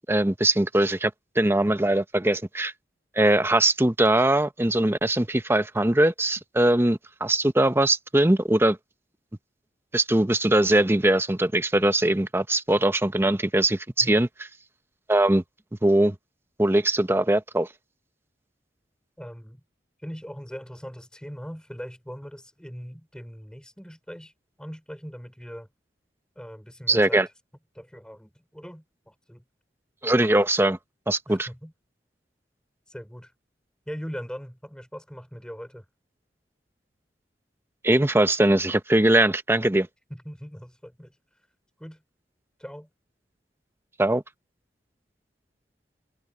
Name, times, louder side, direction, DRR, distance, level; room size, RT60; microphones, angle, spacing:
voice 1, 0.1-1.1 1.4-2.7 3.2-8.8 9.9-14.3 15.1-15.4 15.8-16.1 16.6-17.7 26.9-27.2 30.0-30.8 31.1-31.5 37.8-39.9 44.0-44.2, right 1 dB, 15° right, 0.8 m, -21 dB
voice 2, 19.2-19.6 20.0-24.3 24.6-25.7 26.4-27.3 27.7-29.5 31.3-31.7 32.9-33.3 33.9-35.9 40.1-41.5 41.8-42.0 42.6-42.9, equal, 5° left, 5.3 m, -40 dB
head